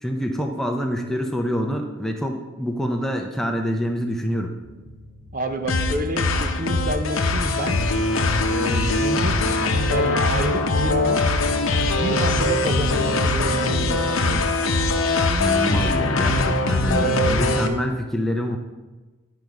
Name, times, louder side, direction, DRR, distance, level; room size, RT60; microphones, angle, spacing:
voice 1, 0.0-4.5 15.3-18.6, equal, ahead, 2 dB, 0.6 m, -26 dB
sound 1, 4.6-13.9, equal, 90° right, 3.2 m, -44 dB
voice 2, 5.3-7.8 8.4-9.5 9.9-11.3 11.9-14.5 16.9-17.4, right 1 dB, 40° right, 6 dB, 0.6 m, -29 dB
sound 2, 5.7-17.7, left 2 dB, 75° left, 0.8 m, -21 dB
10.5 x 5.3 x 4.7 m, 1.2 s
head